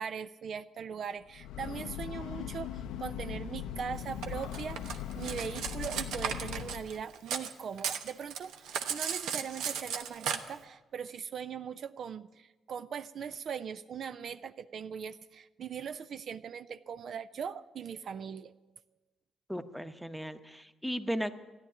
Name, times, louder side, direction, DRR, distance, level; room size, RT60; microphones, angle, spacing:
voice 1, 0.0-18.5, right 7 dB, 60° right, 12 dB, 0.5 m, -40 dB
Breathing / Train, 1.2-7.0, left 10 dB, 90° left, 0.6 m, -40 dB
Cutlery silverware, 4.2-7.5 7.8-10.4, right 7 dB, 85° right, 1.0 m, -35 dB
voice 2, 19.5-21.3, equal, ahead, 10 dB, 0.9 m, -36 dB
14.0 x 10.5 x 9.9 m, 1.1 s
cardioid pair, 90°, 0 cm